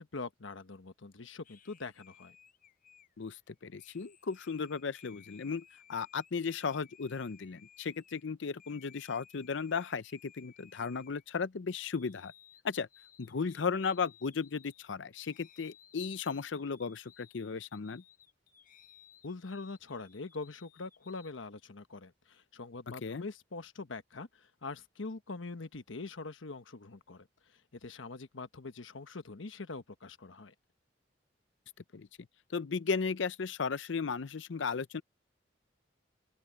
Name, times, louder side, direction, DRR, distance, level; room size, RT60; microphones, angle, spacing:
voice 1, 0.0-2.4 19.2-27.3 27.5-30.5, left 3 dB, 90° left, 1.1 m, -43 dB
sound 1, 1.4-8.2 8.6-11.5 11.8-21.3, left 9 dB, 45° left, 6.7 m, -61 dB
voice 2, 3.2-12.3 12.6-12.9 13.2-18.0 22.9-23.2 31.9-32.1 32.5-35.0, left 5 dB, 70° left, 0.6 m, -35 dB
open air
head